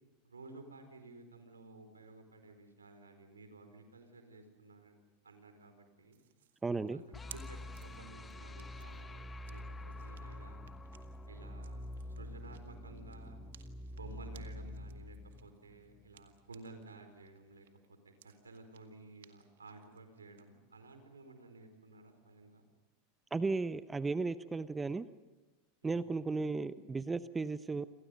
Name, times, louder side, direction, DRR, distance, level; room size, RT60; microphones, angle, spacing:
voice 1, 0.2-4.9 5.2-6.2 6.9-10.6 11.2-13.4 13.9-22.6 25.8-26.1, right 3 dB, 85° right, 7 dB, 4.7 m, -54 dB
sound 1, 6.1-16.9 17.3-20.4, right 11 dB, 70° right, 1.9 m, -61 dB
voice 2, 6.6-7.0 23.3-25.1 25.8-27.9, right 3 dB, 15° right, 14 dB, 0.9 m, -35 dB
sound 2, 7.1-16.2, left 1 dB, 20° left, 1.2 m, -46 dB
29.0 x 27.0 x 5.3 m, 1.1 s
figure-of-eight pair, 85°, 0 cm